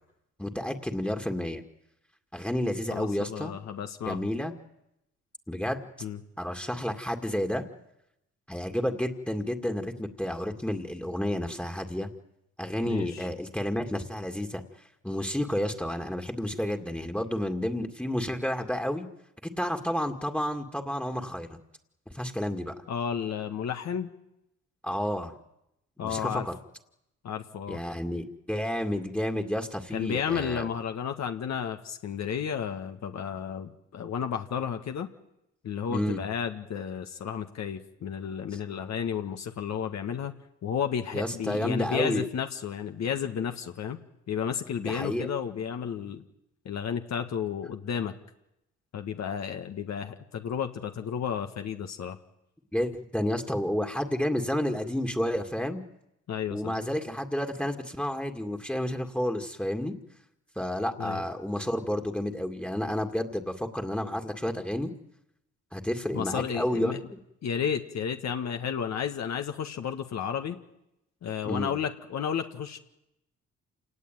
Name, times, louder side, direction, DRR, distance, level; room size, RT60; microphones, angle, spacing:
voice 1, 0.4-1.6 2.3-3.5 4.1-4.5 5.5-5.8 6.4-7.6 8.5-12.1 12.6-14.6 15.0-19.1 19.4-21.5 22.1-22.7 24.8-25.3 26.0-26.5 27.7-30.7 35.9-36.2 38.5-38.6 41.1-42.3 44.8-45.3 52.7-55.8 56.5-59.9 60.6-64.9 65.7-67.2 71.4-71.7, left 1 dB, 5° left, 5 dB, 2.2 m, -30 dB
voice 2, 2.9-4.3 6.0-6.2 12.8-13.3 22.9-24.1 26.0-26.5 27.2-27.8 29.9-35.1 35.6-40.3 40.6-44.0 44.3-46.2 46.6-48.1 48.9-52.2 56.3-56.7 61.0-61.2 66.1-67.0 67.4-70.6 71.2-72.8, left 8 dB, 60° left, 5 dB, 1.7 m, -32 dB
27.5 x 18.5 x 9.2 m, 0.86 s
cardioid pair, 90°, 30 cm